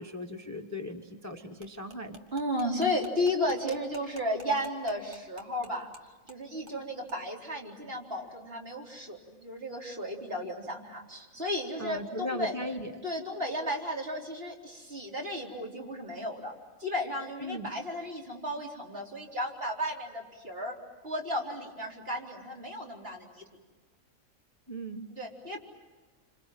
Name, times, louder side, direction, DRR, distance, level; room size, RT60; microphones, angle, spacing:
voice 1, 0.0-2.2 11.8-12.9 17.4-17.7 24.7-25.1, equal, 15° left, 4 dB, 1.3 m, -38 dB
sound 1, 1.6-6.0 6.3-6.4 6.7-6.8 7.1-7.2, right 2 dB, 70° right, 2.2 m, -50 dB
voice 2, 2.3-5.9 6.2-12.5 13.0-16.5 16.8-20.7 21.0-23.4 25.1-25.6, left 1 dB, 45° right, -2 dB, 4.5 m, -34 dB
28.0 x 26.5 x 7.6 m, 1.3 s
omnidirectional pair, 1.4 m